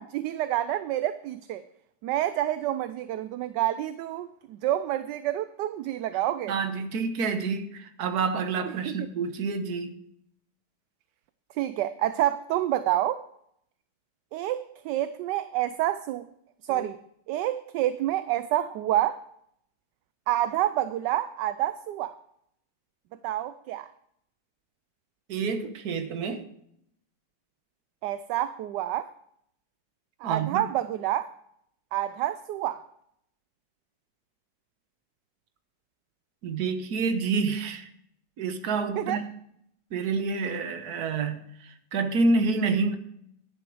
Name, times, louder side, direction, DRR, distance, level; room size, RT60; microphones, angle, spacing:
voice 1, 0.0-1.6 2.0-6.5 8.7-9.0 11.6-13.2 14.3-16.3 16.6-17.0 17.3-19.2 20.3-22.1 23.2-23.9 28.0-29.1 30.2-31.3 31.9-32.8 39.0-39.2, right 13 dB, 80° right, 1.2 m, -28 dB
voice 2, 6.5-10.0 16.7-16.9 25.3-26.4 30.2-30.6 36.4-37.9 38.4-39.2 39.9-42.9, right 4 dB, 60° right, 1.5 m, -28 dB
10.5 x 10.5 x 4.6 m
omnidirectional pair, 1.9 m